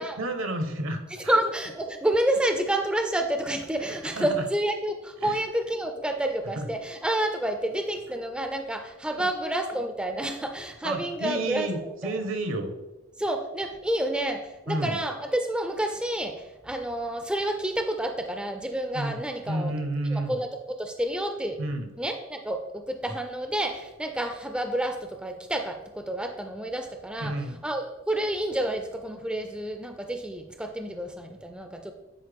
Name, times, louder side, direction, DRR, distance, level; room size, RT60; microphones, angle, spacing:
voice 1, 0.0-1.4 4.1-4.4 5.2-5.4 6.6-6.7 9.2-9.3 10.8-12.7 14.7-15.0 18.9-19.2 19.5-20.4 21.6-21.9 27.2-27.6, right 1 dB, 75° right, 7 dB, 1.0 m, -31 dB
voice 2, 1.1-12.2 13.2-19.7 20.1-21.6 22.0-27.3 27.6-31.9, right 1 dB, 5° right, 5 dB, 0.4 m, -29 dB
9.6 x 4.4 x 3.4 m, 1.0 s
head